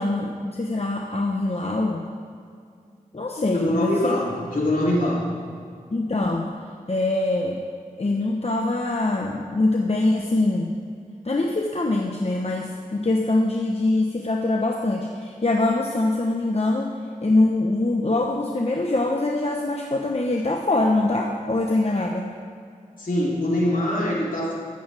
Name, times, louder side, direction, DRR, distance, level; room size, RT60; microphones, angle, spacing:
voice 1, 0.0-2.1 3.1-4.2 5.9-6.5 6.9-7.6 8.0-10.7 11.2-22.3, left 2 dB, 45° left, 1 dB, 1.1 m, -23 dB
voice 2, 3.4-5.3 23.0-24.5, left 1 dB, 70° left, -5 dB, 3.6 m, -23 dB
14.0 x 13.5 x 3.5 m, 2.3 s
cardioid pair, 45°, 15 cm